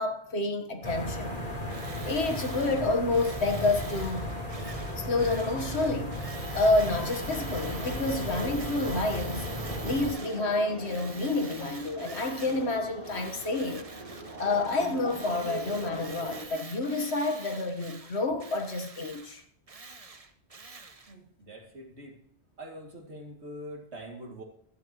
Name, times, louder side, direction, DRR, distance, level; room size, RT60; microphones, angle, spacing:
voice 1, 0.0-1.4 2.1-4.3 5.0-6.2 6.5-9.5 9.8-13.8 14.4-19.4, left 2 dB, 70° left, 1.7 m, -29 dB
sound 1, 0.8-10.1, equal, 35° left, 3.7 m, -35 dB
Tools, 1.7-10.5 10.8-12.7 13.0-21.1, right 4 dB, 35° right, 1.0 m, -46 dB
sound 2, 6.9-16.5, right 2 dB, 55° right, 2.9 m, -42 dB
voice 2, 21.1-22.2 22.6-24.4, equal, 70° right, 2.9 m, -44 dB
15.5 x 13.0 x 3.0 m
omnidirectional pair, 1.1 m